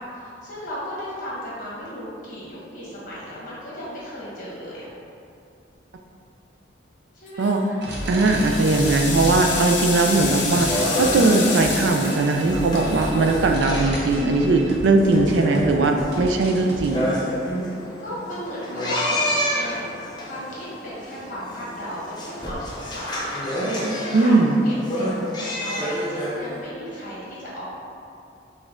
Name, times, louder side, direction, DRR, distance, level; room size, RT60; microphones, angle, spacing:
voice 1, 0.0-4.9 7.1-7.5 8.1-8.4 13.3-13.5 18.0-25.0 25.3-27.6, equal, 45° left, -8 dB, 1.3 m, -35 dB
sound 1, 7.3-7.7 8.1-14.4, left 4 dB, 75° left, 0.6 m, -30 dB
sound 2, 7.8-16.9, equal, 60° right, 0.8 m, -33 dB
voice 2, 8.1-17.1 24.1-24.6, right 3 dB, 75° right, 3 dB, 0.4 m, -19 dB
sound 3, 10.1-26.6, equal, 25° left, 0.6 m, -30 dB
5.1 x 2.3 x 3.6 m, 2.6 s
head